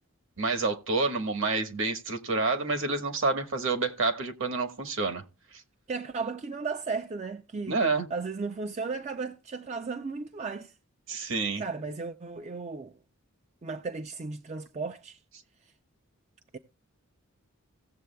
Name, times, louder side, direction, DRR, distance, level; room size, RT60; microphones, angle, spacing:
voice 1, 0.4-5.2 7.7-8.1 11.1-11.6, right 3 dB, 60° right, 1.2 m, -28 dB
voice 2, 5.9-7.8 8.1-10.7 11.6-12.9 13.6-15.2 15.6-15.7 16.5-16.6, right 4 dB, 30° right, 0.4 m, -35 dB
17.0 x 7.4 x 2.2 m
head